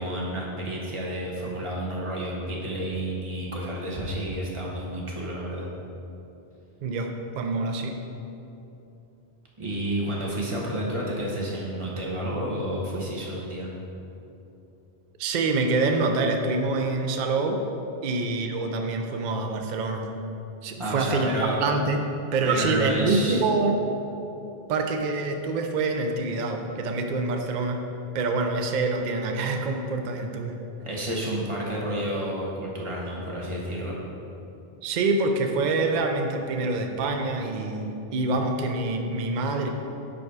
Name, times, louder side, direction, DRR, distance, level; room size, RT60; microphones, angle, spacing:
voice 1, 0.0-5.7 9.6-13.7 20.8-21.6 22.4-23.4 30.8-33.9, right 1 dB, 30° right, -3 dB, 1.0 m, -30 dB
voice 2, 6.8-8.0 15.2-17.6 18.0-20.0 20.6-22.0 22.3-23.8 24.7-27.8 28.1-30.6 34.8-39.7, right 3 dB, 55° right, 4 dB, 0.6 m, -26 dB
5.1 x 4.8 x 4.7 m, 2.8 s
omnidirectional pair, 1.1 m